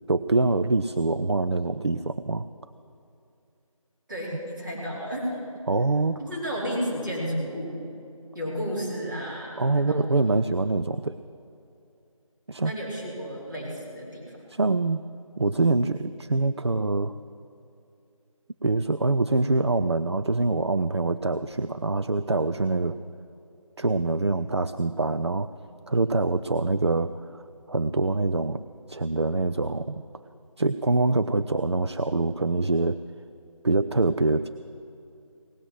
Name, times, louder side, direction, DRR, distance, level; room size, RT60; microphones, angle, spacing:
voice 1, 0.1-2.5 5.7-6.2 9.6-11.2 12.5-12.7 14.5-15.0 15.4-17.1 18.6-23.0 23.8-25.5 25.9-27.4 27.7-28.6 28.9-30.0 30.6-33.0 33.6-34.5, right 3 dB, 50° right, 12 dB, 0.4 m, -24 dB
voice 2, 4.1-5.4 6.2-7.8 8.3-10.1 12.6-14.4, equal, 35° right, -6 dB, 4.4 m, -32 dB
18.5 x 8.0 x 7.7 m, 2.7 s
figure-of-eight pair, 170°, 18 cm